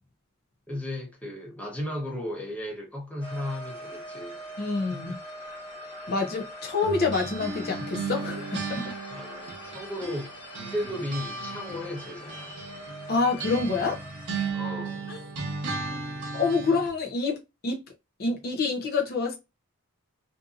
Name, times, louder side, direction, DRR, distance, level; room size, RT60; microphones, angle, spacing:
voice 1, 0.7-4.4 4.9-5.1 9.1-12.5 14.5-15.2, left 1 dB, 5° left, 0.7 m, -35 dB
sound 1, 3.2-14.5, equal, 25° left, 1.4 m, -42 dB
voice 2, 4.6-5.2 6.1-8.9 13.1-14.0 15.1-15.2 15.9-16.0 16.3-17.8 18.2-19.4, left 4 dB, 45° left, 0.5 m, -27 dB
sound 2, 6.8-10.3 10.5-16.9, right 4 dB, 55° right, 0.8 m, -35 dB
2.6 x 2.6 x 2.4 m
head